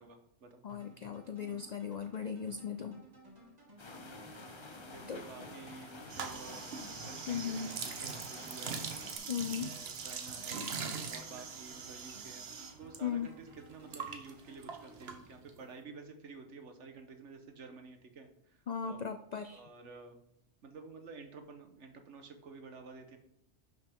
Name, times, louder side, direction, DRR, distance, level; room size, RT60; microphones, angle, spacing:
voice 1, 0.0-0.6 1.4-1.8 4.0-4.3 4.8-6.7 7.0-8.8 9.6-10.7 11.1-12.5 12.8-19.0 19.5-20.2 20.6-23.2, right 4 dB, 75° right, 6 dB, 1.4 m, -51 dB
voice 2, 0.6-3.0 5.1-5.5 7.3-7.8 9.3-9.7 13.0-13.3 18.7-19.6, left 7 dB, 65° left, 9 dB, 0.4 m, -38 dB
sound 1, 0.7-15.8, right 2 dB, 35° right, 2.3 m, -58 dB
sound 2, 3.8-9.2, left 3 dB, 25° left, 0.7 m, -50 dB
sound 3, 6.1-13.0 13.2-15.6, right 5 dB, 60° right, 1.1 m, -42 dB
11.0 x 6.0 x 3.6 m, 0.76 s
omnidirectional pair, 1.2 m